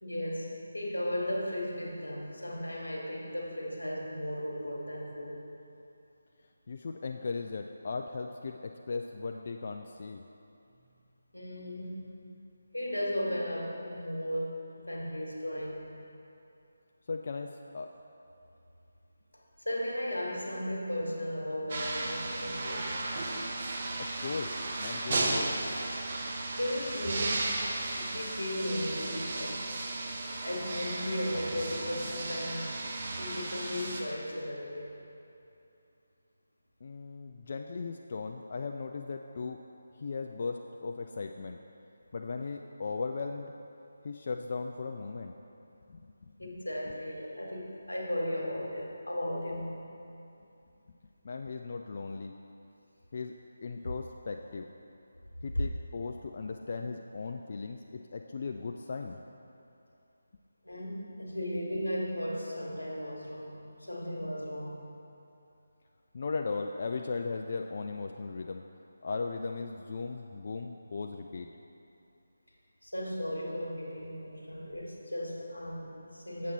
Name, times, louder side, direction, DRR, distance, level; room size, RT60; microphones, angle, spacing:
voice 1, 0.0-5.4 11.3-12.1 12.7-15.9 19.3-23.0 26.5-27.5 28.0-29.6 30.4-32.8 33.2-35.0 46.4-49.7 55.5-55.6 60.6-64.9 72.8-76.5, left 1 dB, 85° left, -1 dB, 1.5 m, -36 dB
voice 2, 6.7-10.2 17.1-17.9 24.0-24.5 24.8-25.6 36.8-39.6 40.0-41.6 42.1-43.5 44.0-45.3 45.9-46.5 51.2-52.3 53.1-53.3 53.6-54.7 55.4-59.2 66.1-68.6 69.0-71.5, left 4 dB, 45° left, 3 dB, 0.3 m, -37 dB
sound 1, 21.7-34.0, right 2 dB, 40° right, 0.8 m, -35 dB
7.3 x 7.2 x 4.1 m, 2.7 s
figure-of-eight pair, 155°, 0 cm